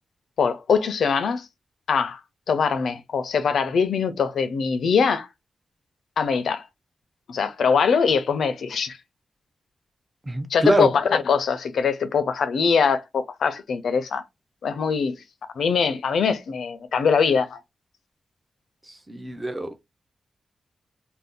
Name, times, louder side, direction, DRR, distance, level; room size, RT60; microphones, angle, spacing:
voice 1, 0.4-1.5 1.9-2.2 2.5-5.3 6.2-6.7 7.3-9.0 10.5-14.2 14.6-15.2 15.6-17.6, left 6 dB, 85° left, 0.5 m, -22 dB
voice 2, 10.3-10.9 19.1-19.8, right 1 dB, 10° right, 0.5 m, -24 dB
2.6 x 2.3 x 3.5 m
wide cardioid pair, 175°, 0 cm